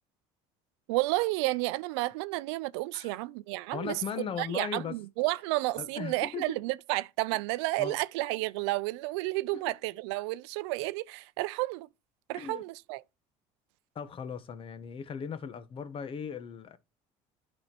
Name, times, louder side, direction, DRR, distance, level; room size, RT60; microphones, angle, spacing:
voice 1, 0.9-11.9 12.3-13.0, right 20 dB, 85° right, 0.4 m, -31 dB
voice 2, 3.7-5.0 5.8-6.6 7.8-8.0 12.3-12.6 13.9-16.8, left 7 dB, 40° left, 1.1 m, -38 dB
10.5 x 4.3 x 4.4 m
supercardioid pair, 100°, 14 cm